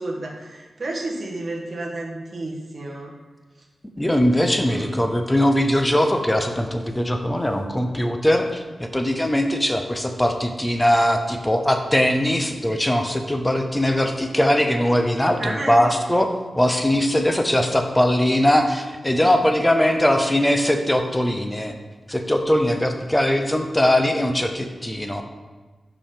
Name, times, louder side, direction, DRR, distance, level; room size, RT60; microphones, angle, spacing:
voice 1, 0.0-3.1 4.6-4.9 5.2-5.4 15.4-15.8, right 2 dB, 45° right, -2 dB, 1.4 m, -31 dB
voice 2, 4.0-21.7 22.1-25.2, left 1 dB, 10° left, 5 dB, 0.7 m, -20 dB
5.4 x 5.3 x 5.0 m, 1.3 s
cardioid pair, 70°, 0 cm